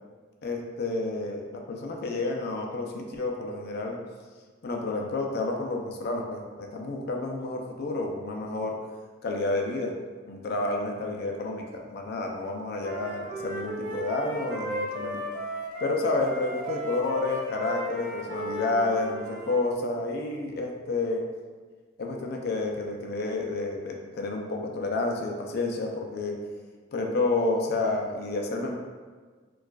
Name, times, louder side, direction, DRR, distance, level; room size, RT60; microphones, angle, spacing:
voice 1, 0.4-4.0 4.6-8.8 9.2-9.9 10.3-15.2 15.8-21.2 22.0-26.4 26.9-28.8, left 2 dB, 55° left, 1 dB, 0.4 m, -30 dB
Wind instrument woodwind instrument, 12.8-19.6, right 1 dB, 45° right, 0.4 m, -35 dB
4.5 x 2.4 x 2.3 m, 1.5 s
head